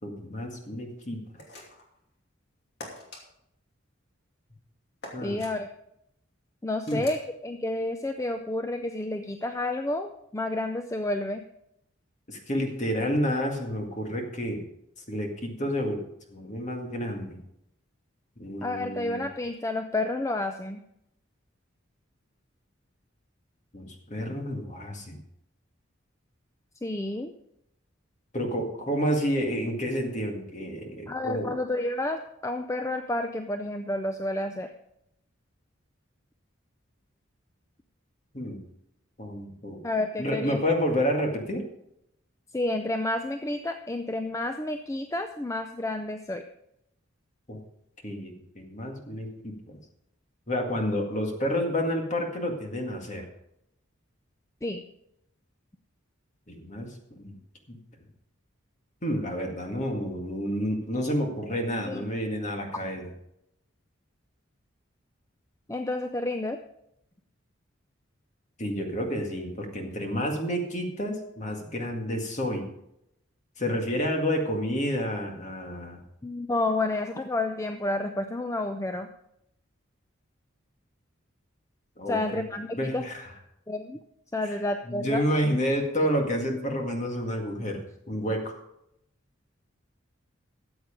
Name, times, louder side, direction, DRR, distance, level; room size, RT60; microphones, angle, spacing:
voice 1, 0.0-1.2 5.1-5.4 6.9-7.0 12.3-14.6 15.1-16.0 16.3-17.4 18.4-19.2 23.7-25.2 28.3-31.6 38.3-38.6 39.2-39.8 40.2-41.6 47.5-47.6 48.0-49.8 50.5-53.3 56.5-57.3 57.7-57.8 59.0-63.1 68.6-72.7 73.6-76.0 82.0-82.4 82.7-83.2 84.4-84.5 84.9-87.8 88.1-88.5, equal, 35° left, 2 dB, 2.0 m, -30 dB
sound 1, 1.4-1.9 2.8-3.2 5.0-5.5 6.9-7.3, left 1 dB, 55° left, 2.7 m, -43 dB
voice 2, 5.2-5.7 6.6-7.2 7.4-11.4 18.6-20.8 26.8-27.3 31.1-34.7 39.8-40.6 42.5-46.4 54.6-54.8 61.9-62.1 65.7-66.6 76.2-79.1 82.1-83.0 83.7-84.0 84.3-85.2, left 2 dB, 15° left, 7 dB, 0.5 m, -30 dB
13.5 x 8.0 x 5.1 m, 0.79 s
head